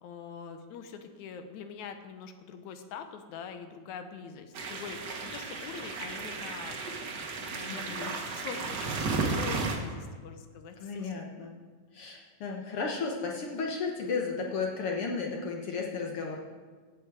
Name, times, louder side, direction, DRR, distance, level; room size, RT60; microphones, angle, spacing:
voice 1, 0.0-6.8 7.4-8.1 8.4-11.1, left 6 dB, 80° left, 8 dB, 2.2 m, -43 dB
sound 1, 4.5-9.8, right 4 dB, 50° right, 1.3 m, -34 dB
voice 2, 7.7-8.1 10.8-11.5 11.9-16.5, left 4 dB, 60° left, 0 dB, 1.7 m, -34 dB
16.5 x 7.0 x 4.8 m, 1.5 s
omnidirectional pair, 3.3 m